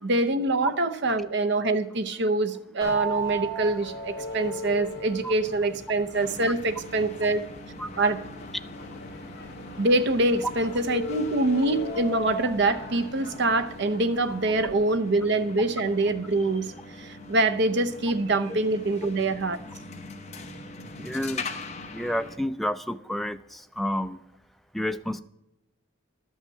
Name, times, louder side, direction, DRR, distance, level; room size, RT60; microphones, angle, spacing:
voice 1, 0.0-7.4 8.0-8.2 9.8-19.6, right 2 dB, 55° right, 9 dB, 0.7 m, -25 dB
sound 1, 2.8-14.7, right 1 dB, 50° left, 1.7 m, -38 dB
sound 2, 6.1-22.4, left 2 dB, 30° left, 0.8 m, -42 dB
voice 2, 21.0-21.5 21.9-24.2 24.7-25.2, left 1 dB, ahead, 9 dB, 0.3 m, -30 dB
12.0 x 5.6 x 7.3 m, 0.91 s
head